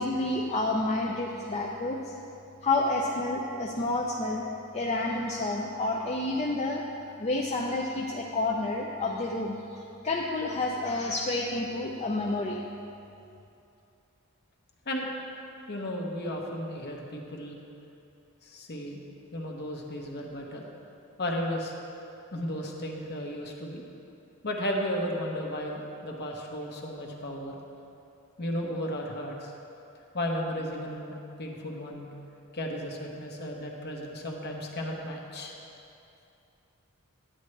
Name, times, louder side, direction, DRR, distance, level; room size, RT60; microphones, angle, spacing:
voice 1, 0.0-2.1 2.6-4.5 4.7-6.8 7.2-12.6, left 2 dB, 30° left, -1 dB, 0.5 m, -29 dB
voice 2, 15.7-17.6 18.4-19.0 19.3-20.7 21.2-21.7 22.3-23.8 24.4-27.6 28.4-29.5 30.1-32.1 32.5-35.5, equal, 50° left, 0 dB, 1.0 m, -34 dB
9.8 x 9.6 x 3.2 m, 2.7 s
head